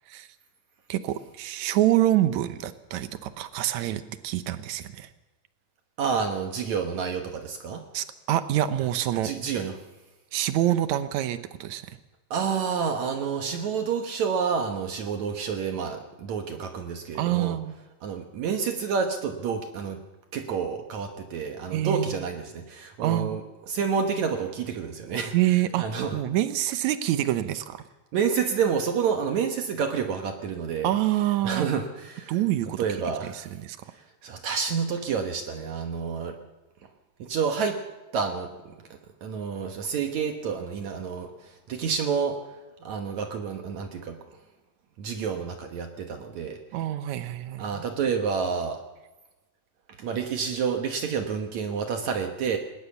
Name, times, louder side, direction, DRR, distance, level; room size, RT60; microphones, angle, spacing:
voice 1, 0.9-5.1 7.9-9.3 10.3-12.0 17.1-17.7 21.7-22.2 23.0-23.4 25.3-25.9 26.1-27.8 30.8-31.7 32.3-33.8 46.7-47.8, right 13 dB, 80° right, 11 dB, 1.6 m, -26 dB
voice 2, 6.0-7.8 9.1-9.7 12.3-17.6 18.0-20.0 20.3-25.3 25.8-26.1 28.1-30.9 31.4-32.3 32.8-33.4 34.2-36.4 37.2-37.8 38.1-38.8 39.2-41.3 41.7-42.4 42.8-44.2 45.0-46.6 47.6-48.8 50.0-52.6, right 6 dB, 60° right, 5 dB, 2.1 m, -29 dB
20.0 x 18.5 x 7.1 m, 1.1 s
omnidirectional pair, 4.4 m